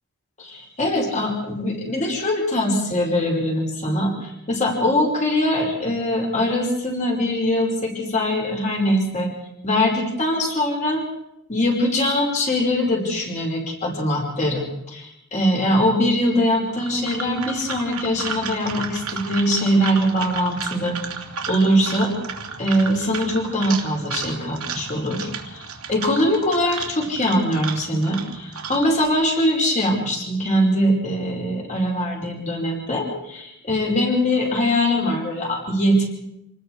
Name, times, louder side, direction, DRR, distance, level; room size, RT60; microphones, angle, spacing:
voice 1, 0.4-9.3 9.6-11.0 11.5-21.0 21.5-22.1 22.6-36.1, left 1 dB, 35° left, 0 dB, 5.3 m, -22 dB
sound 1, 16.7-29.1, right 6 dB, 75° right, 2.7 m, -33 dB
27.5 x 20.0 x 4.8 m, 0.82 s
head